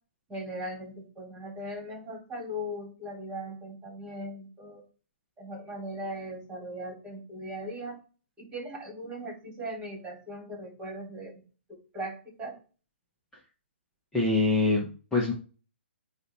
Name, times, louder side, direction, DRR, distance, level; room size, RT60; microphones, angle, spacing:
voice 1, 0.3-4.8 5.4-8.0 8.4-11.4 11.9-12.6, equal, 15° right, -1 dB, 3.8 m, -39 dB
voice 2, 14.1-15.3, left 3 dB, 10° left, -6 dB, 1.9 m, -25 dB
9.1 x 3.2 x 3.7 m, 0.35 s
hypercardioid pair, 140°, 7 cm